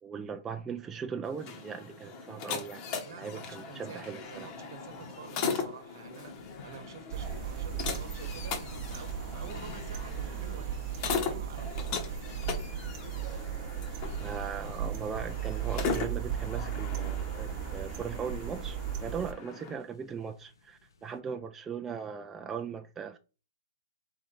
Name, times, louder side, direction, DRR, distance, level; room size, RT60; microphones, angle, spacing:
voice 1, 0.0-2.9 3.1-4.5 14.2-23.2, right 6 dB, 15° right, 0.3 m, -39 dB
sound 1, 1.2-19.7, left 5 dB, 35° left, 1.0 m, -39 dB
voice 2, 3.0-11.9, right 6 dB, 65° right, 1.0 m, -49 dB
sound 2, 4.1-21.2, left 5 dB, 85° left, 0.8 m, -56 dB
sound 3, 7.1-19.3, right 9 dB, 40° right, 0.7 m, -36 dB
3.7 x 3.3 x 4.0 m
hypercardioid pair, 140°, 2 cm